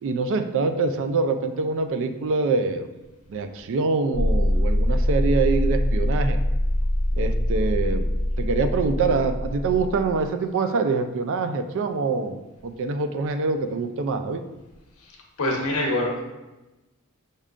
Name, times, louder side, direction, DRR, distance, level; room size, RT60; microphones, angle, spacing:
voice 1, 0.0-2.9 3.3-6.4 7.2-8.1 8.4-14.4, right 4 dB, 60° right, 8 dB, 0.4 m, -25 dB
sound 1, 4.1-10.3, left 1 dB, 25° left, 0.4 m, -23 dB
voice 2, 15.4-16.2, left 1 dB, 75° left, -1 dB, 0.9 m, -24 dB
5.4 x 3.6 x 2.4 m, 1.0 s
head